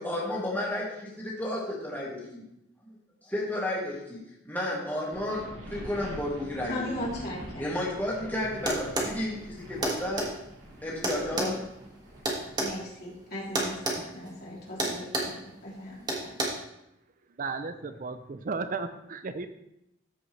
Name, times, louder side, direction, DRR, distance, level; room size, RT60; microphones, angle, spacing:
voice 1, 0.0-2.4 3.2-4.2 4.5-6.8 7.6-10.3 10.8-11.6, left 1 dB, 10° left, -5 dB, 1.9 m, -32 dB
sound 1, 5.1-12.7, equal, 70° right, 2.3 m, -44 dB
voice 2, 6.7-7.6 11.3-11.6 12.6-16.4, left 1 dB, 55° left, -6 dB, 3.4 m, -38 dB
sound 2, 8.7-9.1 9.8-10.3 11.0-12.7 13.6-14.0 14.3-14.5 14.8-15.4 16.1-16.5, right 1 dB, 20° right, 1.5 m, -29 dB
voice 3, 17.4-19.5, right 4 dB, 45° right, 9 dB, 0.4 m, -34 dB
13.5 x 5.3 x 3.3 m, 0.84 s
head